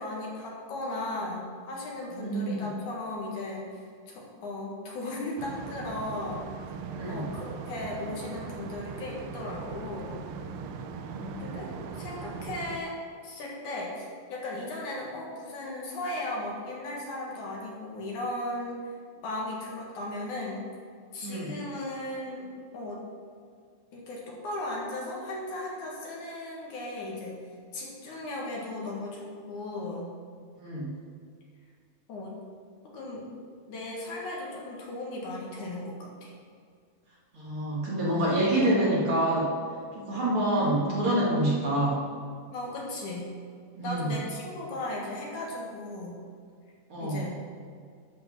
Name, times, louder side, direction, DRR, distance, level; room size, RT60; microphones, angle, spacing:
voice 1, 0.0-6.5 7.1-10.2 11.4-13.0 13.2-20.6 21.1-23.0 23.9-27.4 27.7-30.1 32.1-32.3 32.9-33.3 33.7-36.3 42.5-43.3 43.8-46.2 47.0-47.4, left 2 dB, 65° left, -3 dB, 3.0 m, -36 dB
voice 2, 2.2-2.6 6.9-7.3 10.8-11.4 21.2-21.5 30.6-30.9 37.3-39.6 40.0-42.0 43.8-44.2 46.9-47.2, right 1 dB, 45° right, -6 dB, 2.6 m, -27 dB
sound 1, 5.4-12.8, right 6 dB, 85° right, 1.6 m, -40 dB
12.0 x 5.3 x 5.9 m, 2.1 s
omnidirectional pair, 3.7 m